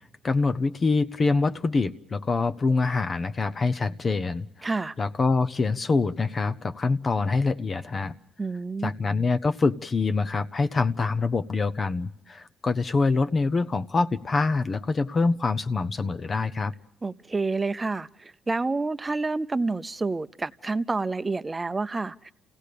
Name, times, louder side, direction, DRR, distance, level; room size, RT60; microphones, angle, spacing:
voice 1, 0.2-4.7 5.0-8.1 8.8-16.7, left 3 dB, 35° left, 0.8 m, -25 dB
voice 2, 4.6-4.9 8.4-8.9 17.0-22.3, right 3 dB, 20° right, 0.7 m, -28 dB
28.5 x 17.0 x 6.8 m
cardioid pair, 90°, 0 cm